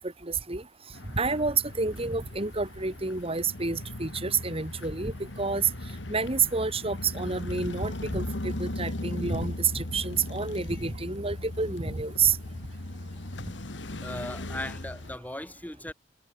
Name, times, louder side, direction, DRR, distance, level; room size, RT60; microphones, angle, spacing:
voice 1, 0.3-0.6 1.2-5.1 5.4-5.7 6.1-12.4, right 5 dB, 30° right, 2.5 m, -29 dB
sound 1, 0.9-15.2, left 1 dB, 80° left, 2.0 m, -38 dB
voice 2, 14.0-15.9, left 1 dB, 10° left, 2.1 m, -38 dB
head